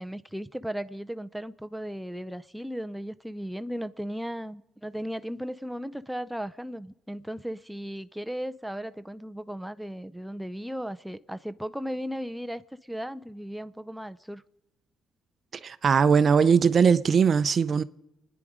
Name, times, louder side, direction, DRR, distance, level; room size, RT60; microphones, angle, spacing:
voice 1, 0.0-14.4, equal, 5° right, 0.6 m, -36 dB
voice 2, 15.6-17.8, right 6 dB, 50° right, 0.6 m, -20 dB
28.5 x 10.0 x 4.9 m
cardioid pair, 90°, 0 cm